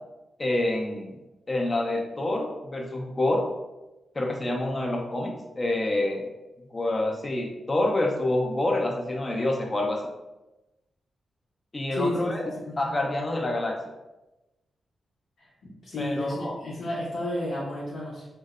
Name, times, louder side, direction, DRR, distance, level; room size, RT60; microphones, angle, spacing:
voice 1, 0.4-1.2 1.5-3.4 4.1-6.3 6.7-10.1 11.7-12.5 12.8-13.8 16.0-16.6, left 1 dB, 35° left, 0 dB, 0.4 m, -27 dB
voice 2, 11.9-12.3 12.6-12.8 15.4-18.3, left 1 dB, 80° left, -9 dB, 0.7 m, -32 dB
2.6 x 2.0 x 2.4 m, 1.0 s
cardioid pair, 65°, 0 cm